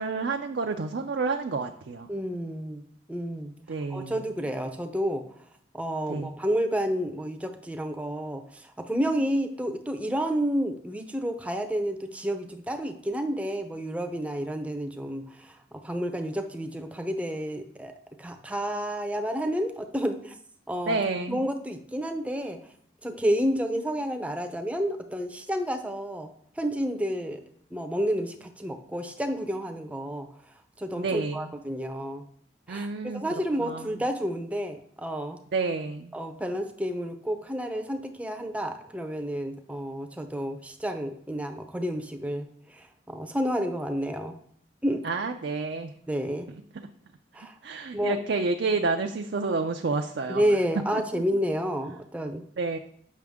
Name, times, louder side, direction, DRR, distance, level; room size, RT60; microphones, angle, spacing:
voice 1, 0.0-2.1 3.7-4.2 6.1-6.3 20.9-21.4 31.0-31.5 32.7-33.2 33.6-33.9 35.5-36.1 45.0-45.9 46.5-46.9 47.6-50.4 50.9-51.2 52.6-52.8, right 4 dB, 60° right, 4 dB, 0.4 m, -29 dB
voice 2, 2.1-2.8 3.1-3.5 3.9-5.3 5.7-8.4 8.8-15.5 15.8-17.9 18.2-20.3 20.7-21.0 21.3-22.6 23.0-26.3 26.6-27.4 27.7-30.3 30.8-32.2 32.7-32.9 33.1-35.4 36.1-42.5 42.7-44.4 44.8-45.0 46.1-46.5 47.3-47.5 47.9-48.2 50.3-52.5, equal, 5° right, 5 dB, 0.5 m, -30 dB
7.4 x 5.8 x 3.5 m, 0.63 s
head